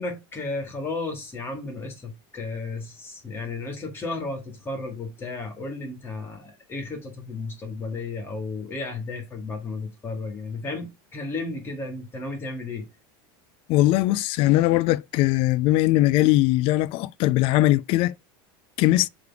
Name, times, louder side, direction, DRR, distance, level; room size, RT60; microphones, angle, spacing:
voice 1, 0.0-12.9, left 3 dB, 20° left, 2.1 m, -33 dB
voice 2, 13.7-18.1 18.8-19.1, left 16 dB, 45° left, 0.4 m, -20 dB
6.6 x 3.4 x 4.7 m
supercardioid pair, 145°, 12 cm